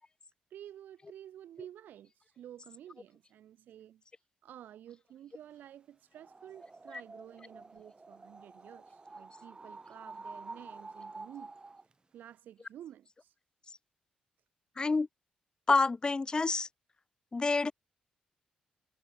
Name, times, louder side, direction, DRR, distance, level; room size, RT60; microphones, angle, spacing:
voice 1, 0.5-4.0 4.4-11.5 12.1-13.3, right 11 dB, 70° right, 6.0 m, -51 dB
sound 1, 6.1-11.9, right 3 dB, 30° right, 1.8 m, -49 dB
voice 2, 14.8-15.1 15.7-16.7 17.3-17.7, left 3 dB, 25° left, 0.3 m, -27 dB
hypercardioid pair, 50°, 3 cm